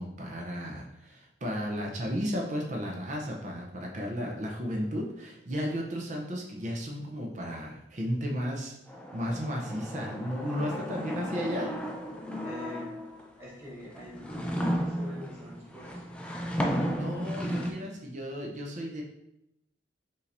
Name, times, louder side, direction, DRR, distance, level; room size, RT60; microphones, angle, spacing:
voice 1, 0.0-8.7 9.1-11.7 16.9-19.0, equal, 40° right, 0 dB, 0.6 m, -34 dB
sound 1, 8.9-13.2 13.8-17.7, equal, 5° left, 0.4 m, -34 dB
voice 2, 10.4-11.2 12.4-13.1 13.4-16.2, left 1 dB, 15° right, -9 dB, 1.2 m, -45 dB
5.4 x 3.2 x 2.6 m, 0.85 s
head